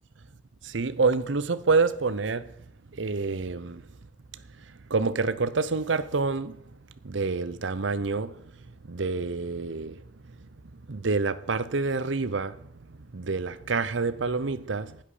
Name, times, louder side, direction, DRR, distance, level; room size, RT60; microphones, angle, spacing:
voice 1, 0.6-2.5 2.9-3.8 4.9-6.6 7.0-8.4 8.9-10.0 10.9-12.7 13.1-15.0, right 4 dB, 85° right, 0.8 m, -27 dB
11.0 x 10.5 x 5.0 m
head